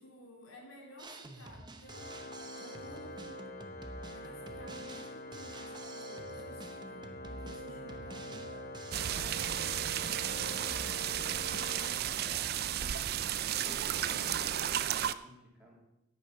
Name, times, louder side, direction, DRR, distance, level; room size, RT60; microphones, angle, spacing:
voice 1, 0.0-3.4 4.0-8.7 9.0-11.5, equal, 85° left, 0 dB, 2.8 m, -55 dB
Drum kit, 1.0-14.6, right 2 dB, 20° right, 0.8 m, -49 dB
Organ, 1.9-12.7, left 1 dB, 50° left, 0.9 m, -45 dB
sound 1, 8.9-15.1, right 11 dB, 50° right, 0.4 m, -33 dB
voice 2, 12.0-12.7 13.1-15.7, equal, 5° right, -4 dB, 2.9 m, -54 dB
9.8 x 8.9 x 5.6 m, 0.89 s
head